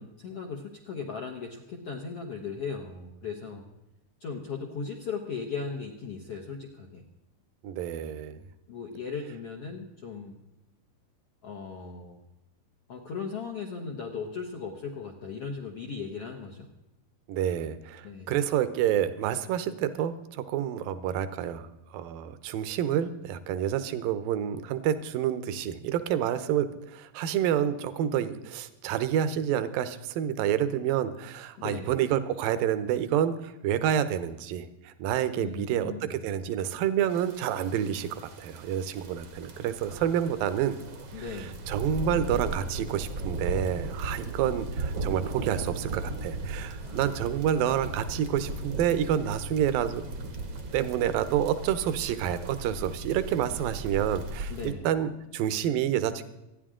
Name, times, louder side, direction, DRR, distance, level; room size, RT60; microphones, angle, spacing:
voice 1, 0.0-3.6 4.2-7.0 8.7-10.4 11.4-12.2 12.9-16.7 18.0-18.3 31.6-32.0 35.3-36.2 41.1-41.6 46.8-47.2 54.5-54.9, left 5 dB, 70° left, 1 dB, 1.4 m, -37 dB
voice 2, 7.6-8.4 17.3-40.8 41.1-41.2 41.7-50.0 50.7-56.2, right 10 dB, 75° right, 12 dB, 2.3 m, -28 dB
sound 1, 37.1-54.7, right 2 dB, 60° right, 1.3 m, -37 dB
26.0 x 10.0 x 3.8 m, 0.96 s
omnidirectional pair, 4.6 m